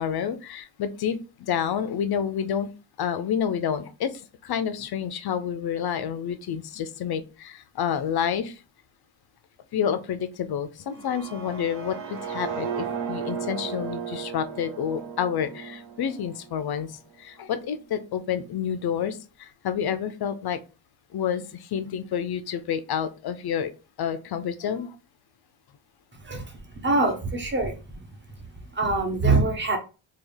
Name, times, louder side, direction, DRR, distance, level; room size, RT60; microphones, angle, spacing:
voice 1, 0.0-2.7 3.0-8.6 9.7-20.6 21.1-23.7 24.0-25.0, left 8 dB, 55° left, 10 dB, 0.5 m, -29 dB
sound 1, 10.9-16.8, right 7 dB, 70° right, 0.8 m, -35 dB
voice 2, 26.1-27.8 28.4-29.8, right 3 dB, 25° right, 4 dB, 0.7 m, -25 dB
3.5 x 2.3 x 3.3 m, 0.32 s
wide cardioid pair, 150°, 48 cm